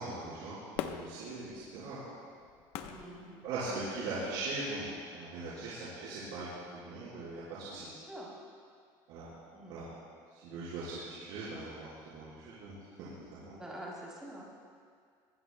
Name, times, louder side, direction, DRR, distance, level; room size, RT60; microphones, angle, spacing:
voice 1, 0.0-2.0 3.4-6.5 6.7-7.9 9.1-9.3 9.7-9.9 10.4-13.5, right 3 dB, 60° right, -11 dB, 4.7 m, -40 dB
Fireworks, 0.7-4.1 4.6-4.7, left 9 dB, 70° left, 0.9 m, -43 dB
voice 2, 2.8-3.4 7.7-8.3 9.5-9.8 13.5-14.4, right 1 dB, 5° right, -5 dB, 3.3 m, -46 dB
23.5 x 19.0 x 2.3 m, 2.1 s
cardioid pair, 180°, 10 cm